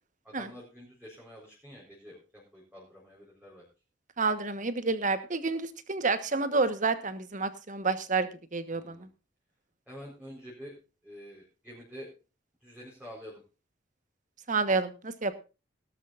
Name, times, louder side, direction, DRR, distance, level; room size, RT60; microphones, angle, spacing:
voice 1, 0.2-3.7 8.7-9.0 9.9-10.7 11.0-12.1 12.6-13.4, equal, 5° right, -5 dB, 4.4 m, -47 dB
voice 2, 4.2-9.1 14.5-15.4, right 4 dB, 45° right, 12 dB, 1.3 m, -29 dB
17.5 x 12.5 x 2.6 m, 0.31 s
head